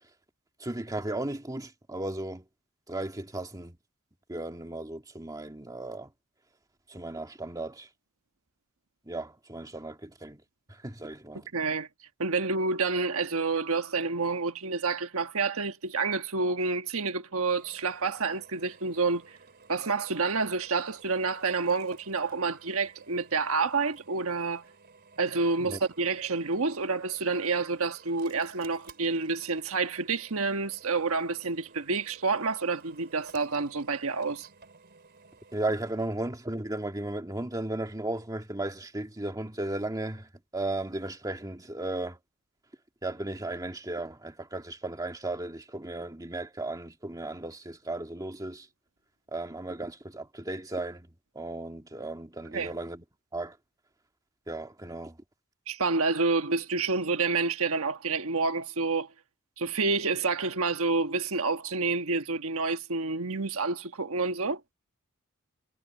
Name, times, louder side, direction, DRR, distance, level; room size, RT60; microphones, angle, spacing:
voice 1, 0.6-2.5 2.9-3.8 4.3-6.1 6.9-7.9 9.0-10.4 10.7-11.5 25.6-25.8 35.5-42.2 43.0-48.7 49.3-53.0 53.3-53.6 54.5-55.2, right 2 dB, 15° right, 2.0 m, -35 dB
voice 2, 11.5-11.9 12.2-19.4 19.7-24.6 25.2-34.5 52.5-52.7 55.7-59.1 59.6-64.6, right 4 dB, 70° right, 1.4 m, -28 dB
Drill, 17.5-35.9, right 4 dB, 50° right, 4.4 m, -55 dB
head